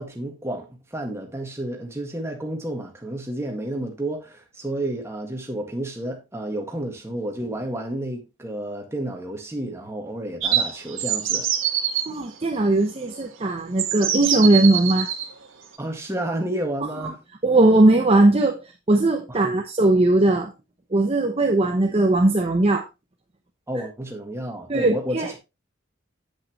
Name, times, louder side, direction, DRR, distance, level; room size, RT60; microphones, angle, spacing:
voice 1, 0.0-11.5 15.8-17.2 19.3-19.6 23.7-25.4, right 1 dB, 15° right, 1.8 m, -31 dB
sound 1, 10.4-12.1 13.1-13.2 13.8-15.3, right 9 dB, 75° right, 1.6 m, -24 dB
voice 2, 12.1-15.1 17.0-17.1 17.4-18.6 18.9-20.5 20.9-22.8 24.7-25.3, right 2 dB, 30° right, 0.8 m, -19 dB
8.4 x 7.9 x 3.0 m
head